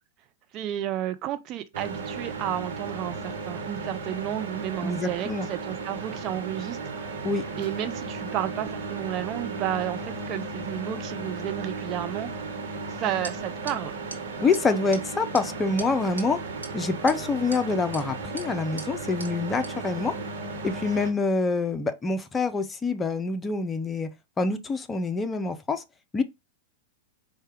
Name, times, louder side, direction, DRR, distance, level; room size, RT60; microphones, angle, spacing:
voice 1, 0.5-6.8 7.6-12.3 12.9-13.9, right 12 dB, 40° right, 0.5 m, -32 dB
sound 1, 1.7-21.1, right 3 dB, 65° right, 1.2 m, -35 dB
voice 2, 4.8-5.5 7.2-7.4 14.4-16.4 16.7-20.1 20.6-24.1 24.4-25.8 26.1-26.2, left 3 dB, 15° left, 0.6 m, -26 dB
sound 2, 13.2-13.3 13.7-13.8 14.1-14.2 14.5-14.6 14.9-15.0 15.3-15.4 15.8-16.2 16.6-16.7 17.1-17.6 17.9-18.0 18.4-18.5 18.8-18.9 19.2-19.3 19.6-19.7, right 2 dB, 85° right, 1.2 m, -38 dB
4.6 x 2.3 x 4.3 m
figure-of-eight pair, 95°, 0 cm